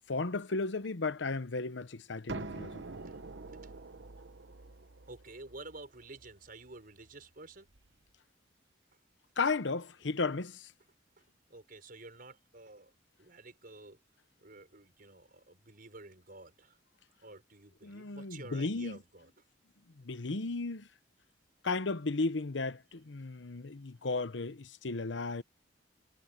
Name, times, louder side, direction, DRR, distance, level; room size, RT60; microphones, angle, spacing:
voice 1, 0.1-2.8 9.4-10.7 17.8-19.0 20.0-20.9 21.6-25.4, left 3 dB, 85° left, 0.9 m, -34 dB
sound 1, 2.3-7.9, right 3 dB, 75° right, 1.0 m, -46 dB
voice 2, 5.1-7.7 10.0-10.1 11.2-11.3 11.5-12.9 13.2-14.0 14.4-16.8 17.2-19.3, right 2 dB, 50° right, 5.5 m, -51 dB
head